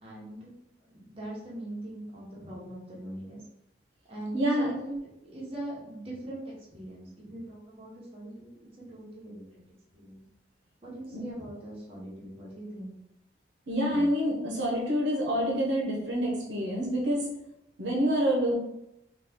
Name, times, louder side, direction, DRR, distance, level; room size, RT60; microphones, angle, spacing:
voice 1, 0.0-0.5 0.9-3.4 4.1-8.5 8.9-9.6 9.9-10.2 10.8-12.9 13.9-14.1, right 1 dB, 30° right, -6 dB, 1.0 m, -41 dB
voice 2, 4.3-4.8 11.1-11.2 13.7-17.3 17.8-18.5, equal, 70° right, -3 dB, 0.7 m, -27 dB
3.1 x 2.3 x 3.5 m, 0.85 s
head